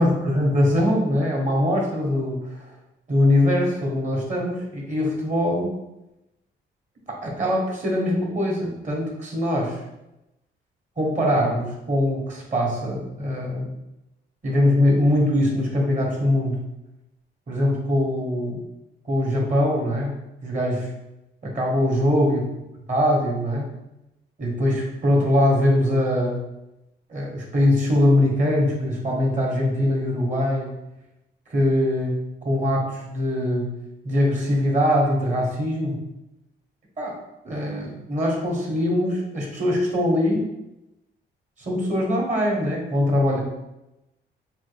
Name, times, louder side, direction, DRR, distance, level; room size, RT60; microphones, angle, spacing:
voice 1, 0.0-2.7 3.1-5.7 7.1-9.8 11.0-13.7 14.4-16.5 17.5-18.6 19.0-20.1 20.4-20.9 21.4-22.4 22.9-23.7 24.4-26.4 27.1-30.7 31.5-32.2 32.4-33.7 34.0-36.0 37.0-37.2 37.4-40.5 41.6-43.4, left 1 dB, 40° right, -2 dB, 1.4 m, -22 dB
5.2 x 2.3 x 3.4 m, 0.92 s
cardioid pair, 90°, 20 cm